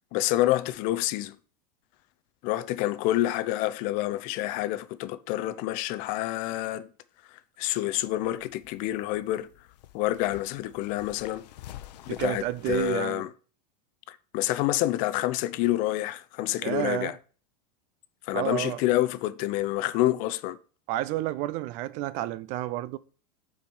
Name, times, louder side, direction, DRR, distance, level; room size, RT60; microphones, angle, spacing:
voice 1, 0.1-1.4 2.4-6.9 7.3-9.5 9.9-11.4 12.1-13.3 14.1-17.1 18.2-20.6, left 15 dB, 40° left, 0.6 m, -28 dB
sound 1, 7.9-13.0, left 13 dB, 80° left, 0.7 m, -48 dB
voice 2, 12.1-13.3 16.6-17.1 18.3-18.8 20.9-23.0, right 15 dB, 35° right, 0.4 m, -30 dB
7.1 x 4.7 x 5.4 m
supercardioid pair, 155°, 21 cm